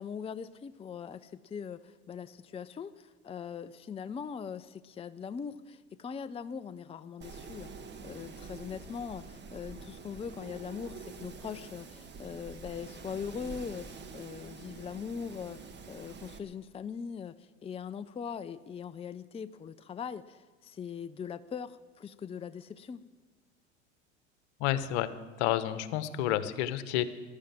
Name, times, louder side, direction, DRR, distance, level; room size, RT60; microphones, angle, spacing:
voice 1, 0.0-7.7 8.0-23.0, left 6 dB, 15° left, 13 dB, 0.6 m, -41 dB
Wind, 7.2-16.4, right 4 dB, 30° right, 1.7 m, -47 dB
voice 2, 24.6-25.1 25.4-27.1, left 12 dB, 65° left, 13 dB, 1.2 m, -30 dB
15.0 x 12.0 x 7.5 m, 1.3 s
hypercardioid pair, 80°, 35 cm